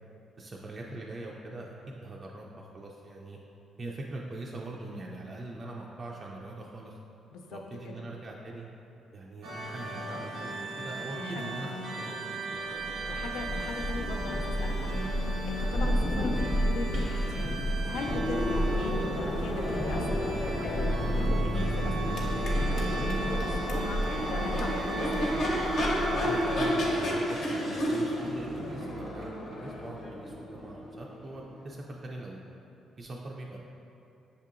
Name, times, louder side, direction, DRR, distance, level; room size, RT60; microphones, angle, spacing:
voice 1, 0.4-3.4 3.8-7.0 7.5-8.7 9.1-12.2 12.5-13.0 26.2-32.6 33.0-33.6, right 2 dB, 35° right, -2 dB, 0.3 m, -42 dB
voice 2, 7.3-8.1 11.2-11.4 13.0-25.4, left 3 dB, 90° left, 3 dB, 0.3 m, -39 dB
sound 1, 9.4-28.9, right 1 dB, 90° right, 0.6 m, -38 dB
Thunder / Rain, 12.8-26.9, equal, 25° left, 0.5 m, -31 dB
Crowd / Race car auto racing / Accelerating revving vroom, 17.9-31.7, equal, 70° left, 0.8 m, -32 dB
6.4 x 2.7 x 2.4 m, 2.8 s
cardioid pair, 90°, 0 cm